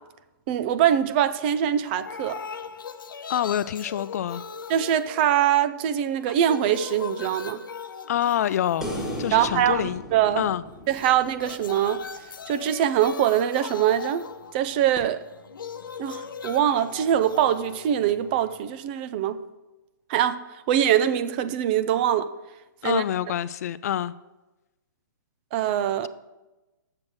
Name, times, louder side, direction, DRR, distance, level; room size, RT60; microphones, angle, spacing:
voice 1, 0.5-2.4 4.7-7.6 9.3-10.4 10.9-12.0 12.5-14.3 14.5-15.2 16.0-19.4 20.1-22.3 22.8-23.0 25.5-26.1, right 10 dB, 30° right, 0.4 m, -23 dB
sound 1, 1.8-5.8 6.1-9.9 10.9-18.9, left 6 dB, 90° left, 0.8 m, -40 dB
voice 2, 3.3-4.4 8.1-10.0 10.4-10.6 22.8-24.1 26.0-26.1, left 11 dB, 50° left, 0.4 m, -27 dB
sound 2, 8.8-12.1 15.0-15.1, equal, 5° right, 1.5 m, -36 dB
7.4 x 6.3 x 7.6 m
hypercardioid pair, 155°, 11 cm